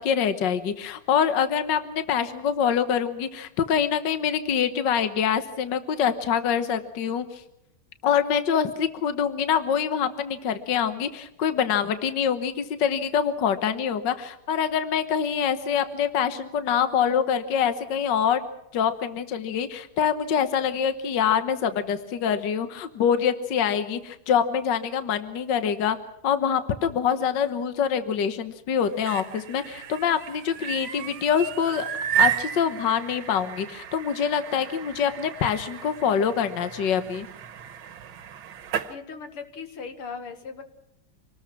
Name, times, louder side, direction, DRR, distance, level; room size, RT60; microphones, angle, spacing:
voice 1, 0.0-7.4 8.0-18.5 18.7-26.0 26.2-31.9 32.2-37.3, left 8 dB, 60° left, 10 dB, 1.8 m, -25 dB
sound 1, 28.8-38.9, right 10 dB, 70° right, 1.9 m, -32 dB
voice 2, 38.9-40.6, left 5 dB, 85° left, 7 dB, 2.9 m, -38 dB
27.0 x 19.5 x 6.0 m, 0.80 s
omnidirectional pair, 2.4 m